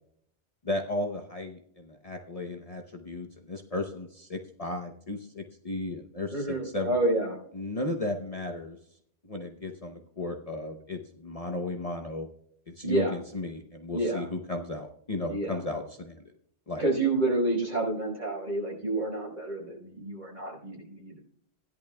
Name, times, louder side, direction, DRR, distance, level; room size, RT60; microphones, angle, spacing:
voice 1, 0.6-7.0 7.5-8.8 9.2-12.3 12.7-16.3 16.7-16.9, left 2 dB, 35° left, 3 dB, 0.9 m, -35 dB
voice 2, 6.3-7.4 12.8-13.1 13.9-14.3 15.3-15.6 16.8-21.2, right 2 dB, 45° right, -3 dB, 5.0 m, -29 dB
17.0 x 10.5 x 2.3 m, 0.66 s
omnidirectional pair, 1.1 m